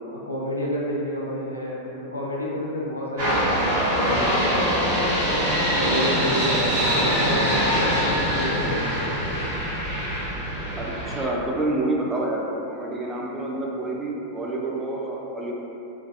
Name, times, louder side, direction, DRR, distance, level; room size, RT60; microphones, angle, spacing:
voice 1, 0.0-5.2 5.8-9.2, left 1 dB, 90° left, -5 dB, 0.4 m, -29 dB
sound 1, 3.2-11.2, equal, 65° right, 1.3 m, -23 dB
voice 2, 10.8-15.5, right 2 dB, 15° right, -3 dB, 0.4 m, -28 dB
2.4 x 2.2 x 2.6 m, 2.8 s
figure-of-eight pair, 90°, 0 cm